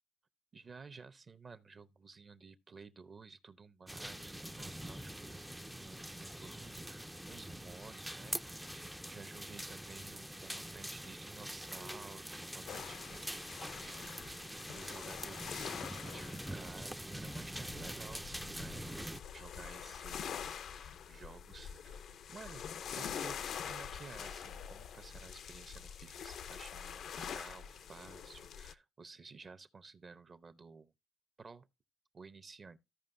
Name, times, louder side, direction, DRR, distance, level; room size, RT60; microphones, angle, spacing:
voice 1, 0.5-8.4 8.7-14.4 14.7-30.9 31.4-31.7 32.1-32.8, right 4 dB, 40° right, 0.7 m, -54 dB
sound 1, 3.9-19.2, equal, 5° right, 0.4 m, -44 dB
sound 2, 12.7-28.7, left 8 dB, 65° left, 0.5 m, -45 dB
14.5 x 5.2 x 2.6 m
cardioid pair, 90°, 0 cm